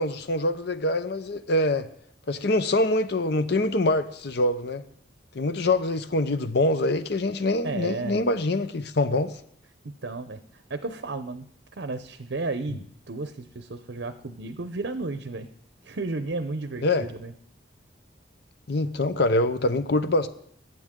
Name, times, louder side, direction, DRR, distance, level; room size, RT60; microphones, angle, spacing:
voice 1, 0.0-1.9 2.3-4.8 5.3-9.4 16.8-17.1 18.7-20.3, left 2 dB, 55° left, 11 dB, 0.7 m, -24 dB
voice 2, 7.6-8.2 9.8-11.4 11.7-15.5 15.8-17.3, right 3 dB, 60° right, 10 dB, 0.7 m, -33 dB
22.0 x 9.1 x 3.7 m, 0.68 s
head